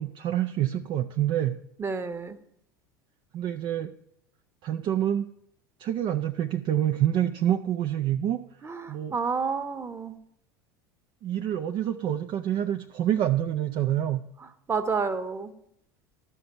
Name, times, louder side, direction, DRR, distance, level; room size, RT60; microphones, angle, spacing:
voice 1, 0.0-1.6 3.3-3.9 4.6-5.3 5.8-8.4 8.9-9.1 11.2-14.3, right 11 dB, 45° right, 6 dB, 0.5 m, -27 dB
voice 2, 1.8-2.4 8.6-10.2 14.4-15.5, right 5 dB, 20° right, 8 dB, 1.1 m, -30 dB
12.0 x 5.9 x 6.6 m, 0.74 s
figure-of-eight pair, 75°, 12 cm